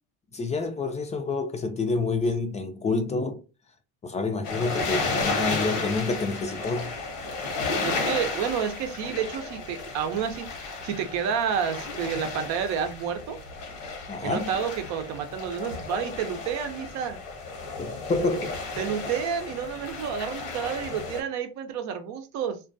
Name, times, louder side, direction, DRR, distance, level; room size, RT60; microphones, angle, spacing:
voice 1, 0.3-3.4 4.0-7.0 14.1-14.5 17.8-18.6, left 3 dB, 25° left, 0.4 m, -28 dB
sound 1, 4.4-21.2, left 3 dB, 80° left, 0.9 m, -33 dB
voice 2, 7.8-10.5 10.8-13.4 14.2-17.2 18.8-22.6, right 8 dB, 65° right, 0.6 m, -30 dB
2.2 x 2.2 x 2.6 m
supercardioid pair, 85°, 30 cm